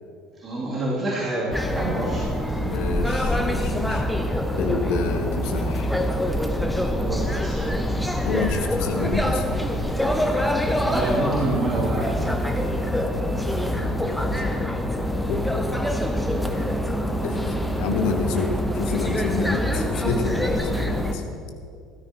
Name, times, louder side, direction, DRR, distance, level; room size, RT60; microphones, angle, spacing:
voice 1, 0.4-2.3 6.9-7.6 10.9-12.2, right 2 dB, 30° right, -7 dB, 2.8 m, -27 dB
sound 1, 1.5-21.1, equal, 5° left, 1.0 m, -25 dB
voice 2, 2.6-4.0 4.5-5.9 8.2-9.4 14.0-14.7 15.3-15.5 17.2-21.2, left 4 dB, 55° left, 6 dB, 1.1 m, -28 dB
14.0 x 13.0 x 3.0 m, 2.3 s
figure-of-eight pair, 65°, 0 cm